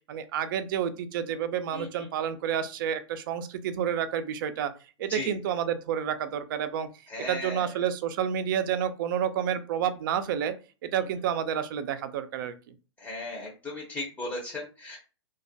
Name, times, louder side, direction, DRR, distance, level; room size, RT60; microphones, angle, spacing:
voice 1, 0.0-4.7 5.0-6.9 7.3-10.5 10.8-12.5, right 9 dB, 45° right, 11 dB, 0.4 m, -29 dB
voice 2, 1.7-2.1 5.1-5.3 7.1-7.7 13.0-15.0, left 2 dB, 10° left, -2 dB, 0.6 m, -36 dB
2.2 x 2.1 x 2.6 m, 0.34 s
hypercardioid pair, 140°, 15 cm